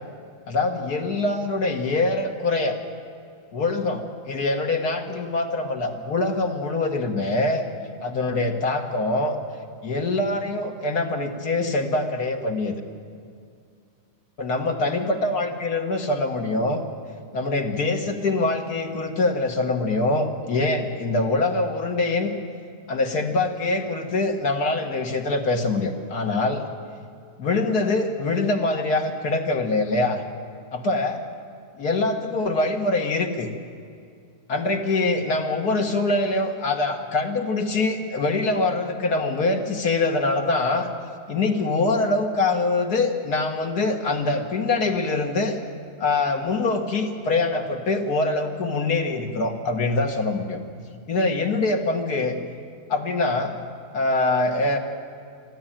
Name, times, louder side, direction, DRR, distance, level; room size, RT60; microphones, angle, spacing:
voice 1, 0.5-2.8 3.5-7.6 8.0-9.4 9.8-12.8 14.4-16.8 17.3-22.4 22.9-26.6 27.4-30.2 30.7-31.2 31.8-33.5 34.5-40.9 41.3-45.6 46.0-50.6 51.1-52.4 52.9-53.6 53.9-54.8, left 2 dB, 75° left, 3 dB, 2.1 m, -24 dB
22.0 x 14.0 x 9.0 m, 2.3 s
omnidirectional pair, 1.7 m